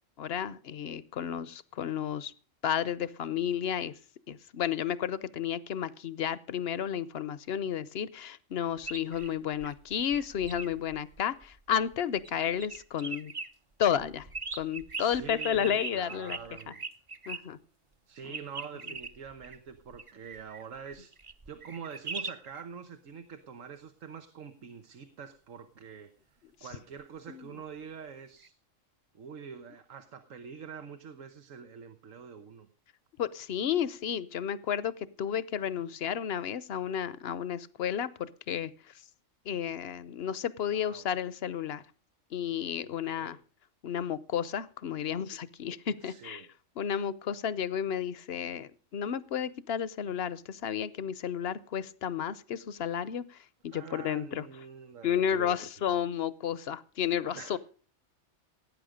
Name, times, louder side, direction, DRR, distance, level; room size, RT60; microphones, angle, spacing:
voice 1, 0.2-2.3 2.6-3.9 4.3-13.3 13.8-14.3 14.6-16.4 17.3-17.6 27.3-27.5 33.2-38.7 39.5-41.8 42.3-43.4 43.8-46.4 46.8-53.4 53.6-54.4 55.0-57.6, left 9 dB, 55° left, 18 dB, 0.9 m, -32 dB
sound 1, 8.8-12.0 12.2-13.5 14.0-17.4 18.3-22.6 28.4-28.5, right 4 dB, 30° right, 0.8 m, -41 dB
voice 2, 15.0-16.8 18.1-21.1 21.5-26.1 26.6-28.5 29.1-32.7 40.7-41.1 43.1-43.4 46.0-46.5 53.7-55.9 57.3-57.6, right 6 dB, 85° right, 8 dB, 1.5 m, -45 dB
17.5 x 9.2 x 5.1 m, 0.42 s
omnidirectional pair, 1.3 m